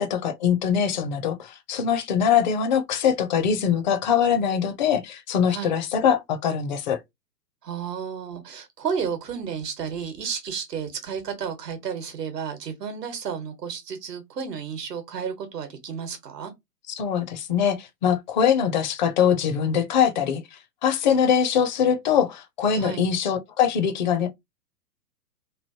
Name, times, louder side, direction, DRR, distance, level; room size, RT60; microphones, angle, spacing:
voice 1, 0.0-7.0 17.0-20.4 20.8-24.3, left 8 dB, 30° left, 0.5 m, -22 dB
voice 2, 7.6-16.5 22.7-23.1, right 7 dB, 75° right, 1.1 m, -32 dB
3.1 x 2.5 x 2.7 m
figure-of-eight pair, 110°, 48 cm